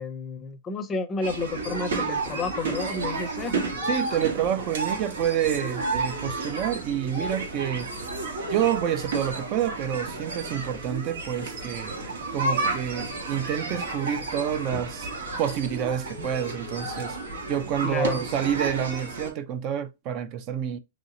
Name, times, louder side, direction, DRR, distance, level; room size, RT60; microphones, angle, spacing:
voice 1, 0.0-3.6 17.8-18.2, left 3 dB, 20° left, 0.5 m, -31 dB
sound 1, 1.2-19.3, right 3 dB, 90° right, 1.3 m, -32 dB
voice 2, 3.8-7.9 8.5-11.9 12.3-15.1 15.4-17.2 17.5-20.8, right 9 dB, 40° right, 0.3 m, -28 dB
3.1 x 2.7 x 2.7 m
hypercardioid pair, 145°, 0 cm